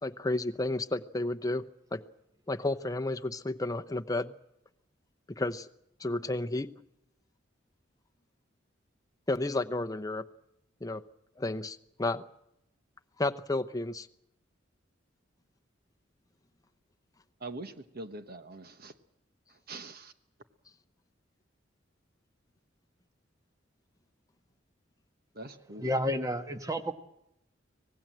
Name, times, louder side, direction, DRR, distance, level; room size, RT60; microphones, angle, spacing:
voice 1, 0.0-2.0 2.5-4.3 5.3-5.7 6.0-6.7 9.3-10.3 10.8-11.0 11.4-12.2 13.2-14.1, left 2 dB, 20° left, 7 dB, 0.8 m, -32 dB
voice 2, 17.4-18.9 19.7-20.1 25.3-25.9, right 2 dB, 50° right, 9 dB, 1.2 m, -43 dB
voice 3, 25.8-26.9, equal, 20° right, 8 dB, 1.4 m, -30 dB
25.0 x 18.5 x 7.6 m, 0.82 s
head